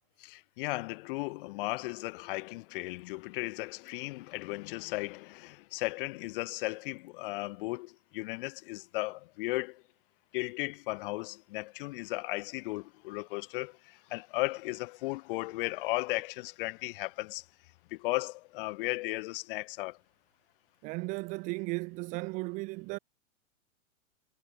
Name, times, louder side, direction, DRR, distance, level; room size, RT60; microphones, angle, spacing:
voice 1, 0.2-9.8 10.3-17.5 17.9-20.0, left 22 dB, 40° left, 1.4 m, -36 dB
voice 2, 20.8-23.0, right 25 dB, 20° right, 0.5 m, -35 dB
hypercardioid pair, 140°, 39 cm